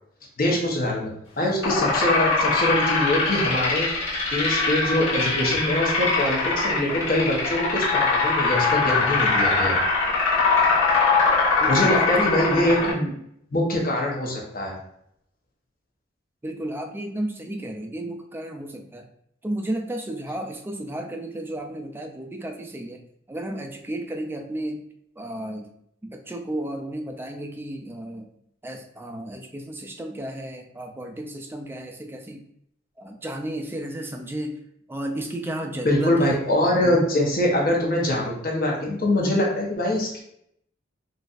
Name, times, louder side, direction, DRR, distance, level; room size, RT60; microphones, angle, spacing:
voice 1, 0.4-3.9 4.3-9.8 11.7-13.1 13.5-14.7 35.8-40.2, left 1 dB, 50° left, -2 dB, 0.9 m, -23 dB
sound 1, 1.6-12.9, left 4 dB, 75° left, 1.2 m, -22 dB
voice 2, 11.6-12.5 16.4-19.1 19.4-23.0 23.3-24.8 25.2-25.7 26.0-28.3 28.6-32.4 33.0-34.6 34.9-36.4, right 1 dB, 10° right, 3 dB, 0.3 m, -33 dB
4.0 x 2.4 x 2.4 m, 0.73 s
head